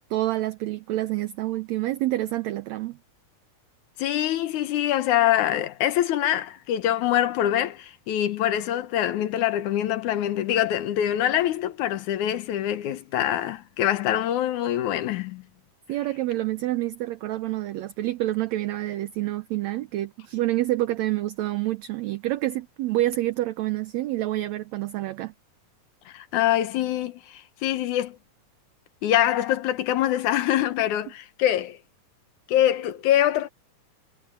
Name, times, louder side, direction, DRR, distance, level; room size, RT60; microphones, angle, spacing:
voice 1, 0.1-3.0 15.9-25.3, right 16 dB, 75° right, 1.8 m, -27 dB
voice 2, 4.0-15.4 26.1-28.2 29.0-31.8 32.5-33.5, left 12 dB, 70° left, 2.3 m, -24 dB
omnidirectional pair, 3.7 m